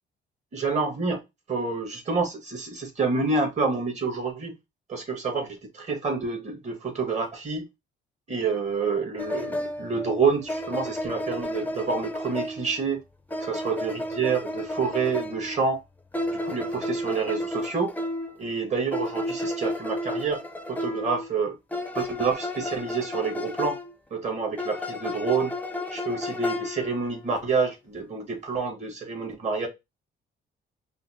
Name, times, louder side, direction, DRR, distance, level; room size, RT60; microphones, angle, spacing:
voice 1, 0.5-1.2 1.5-4.5 4.9-7.7 8.3-13.0 13.4-15.8 16.3-17.9 18.4-20.4 20.7-21.6 21.9-23.7 24.1-25.5 25.9-29.7, right 4 dB, 35° right, 1.7 m, -28 dB
sound 1, 9.2-12.8 13.3-15.6 16.1-18.4 18.9-21.3 21.7-23.9 24.6-27.3, left 1 dB, 10° left, 0.6 m, -32 dB
5.5 x 2.1 x 2.8 m
cardioid pair, 90°, 20 cm